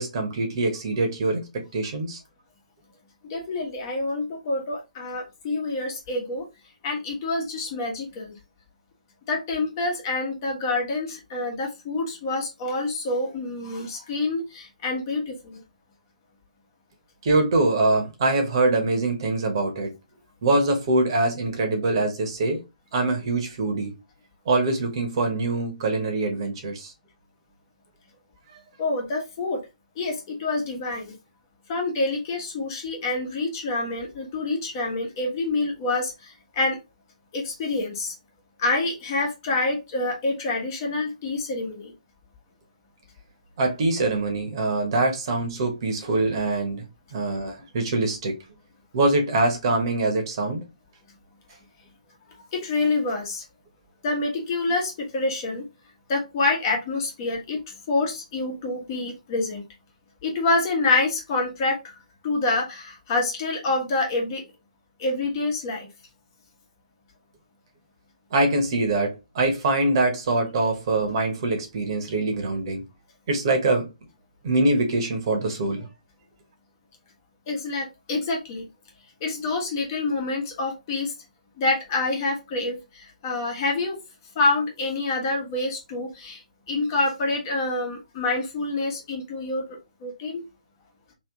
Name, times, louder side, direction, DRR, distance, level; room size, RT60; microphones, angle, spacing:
voice 1, 0.0-1.4 1.7-2.2 17.2-19.9 20.4-22.6 22.9-24.0 24.5-26.9 43.6-46.8 47.1-48.4 48.9-50.6 68.3-72.8 73.3-73.9 74.4-75.9, right 2 dB, 40° right, 1.1 m, -24 dB
voice 2, 3.3-6.4 6.8-8.4 9.3-15.6 28.8-29.6 29.9-31.2 31.7-36.8 37.3-38.1 38.6-41.9 52.5-53.4 54.0-55.6 56.1-57.6 57.9-59.6 60.2-62.0 62.2-64.4 65.0-65.9 77.5-78.6 79.2-81.1 81.6-84.0 84.3-86.4 86.7-90.4, left 2 dB, 30° left, 1.2 m, -27 dB
3.1 x 2.9 x 3.7 m
figure-of-eight pair, 140°, 4 cm